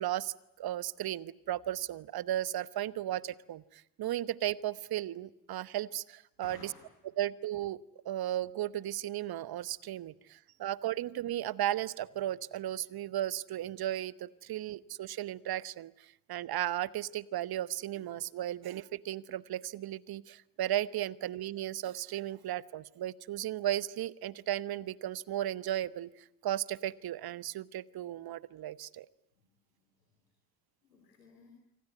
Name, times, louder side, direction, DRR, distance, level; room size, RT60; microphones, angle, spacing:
voice 1, 0.0-6.7 7.2-7.8 8.0-26.1 26.4-29.1, right 12 dB, 50° right, 18 dB, 1.1 m, -35 dB
voice 2, 6.4-7.2 29.8-30.1 30.8-31.5, left 5 dB, 90° left, 4 dB, 3.4 m, -57 dB
26.5 x 23.5 x 9.5 m, 0.81 s
hypercardioid pair, 45°, 47 cm